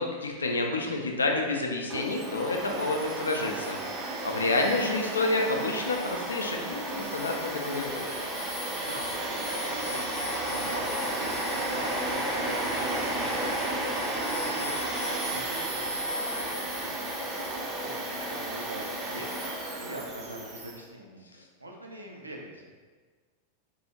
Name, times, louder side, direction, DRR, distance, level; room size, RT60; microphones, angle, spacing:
voice 1, 0.0-3.8 4.2-7.9, left 2 dB, 75° left, 2 dB, 0.3 m, -29 dB
Domestic sounds home sounds, 1.9-20.8, right 1 dB, 25° right, 0.5 m, -32 dB
voice 2, 8.7-17.1 17.4-22.6, right 1 dB, 80° right, 0 dB, 0.4 m, -43 dB
2.7 x 2.4 x 2.8 m, 1.4 s
figure-of-eight pair, 90°, 0 cm